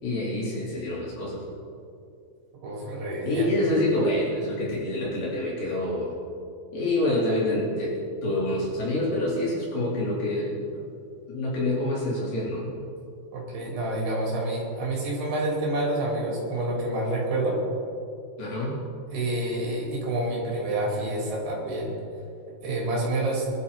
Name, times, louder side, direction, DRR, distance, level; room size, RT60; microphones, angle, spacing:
voice 1, 0.0-1.4 3.2-6.1 6.7-10.8 11.3-12.7 18.4-18.8, left 1 dB, 50° left, -6 dB, 5.7 m, -27 dB
voice 2, 2.5-3.5 13.3-17.6 19.1-21.9 22.6-23.5, right 1 dB, 55° right, -4 dB, 6.1 m, -28 dB
22.5 x 12.5 x 4.3 m, 2.5 s
omnidirectional pair, 5.6 m